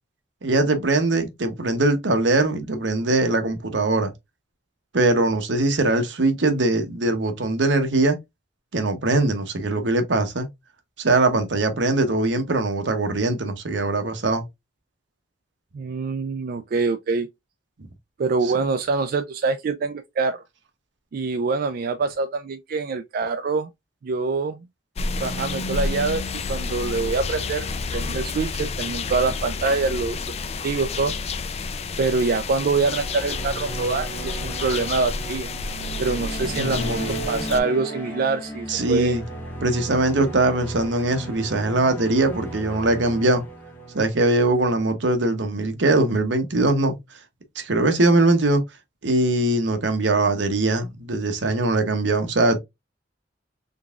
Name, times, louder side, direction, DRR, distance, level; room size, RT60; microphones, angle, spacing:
voice 1, 0.4-4.1 4.9-8.2 8.7-10.5 11.0-14.4 18.4-18.5 36.5-37.2 38.7-39.2 39.6-43.4 43.9-46.9 47.6-48.6 49.0-52.6, right 2 dB, 75° right, 0.8 m, -21 dB
voice 2, 15.7-17.3 18.2-20.4 21.1-23.7 24.0-24.7 25.2-27.7 27.9-30.2 30.6-31.1 32.0-35.5 36.0-37.0 37.3-39.2, right 4 dB, 55° right, 0.3 m, -25 dB
sound 1, 25.0-37.6, left 4 dB, 35° left, 0.4 m, -30 dB
sound 2, 32.5-45.0, right 2 dB, 10° left, 1.2 m, -36 dB
3.8 x 3.5 x 2.3 m
head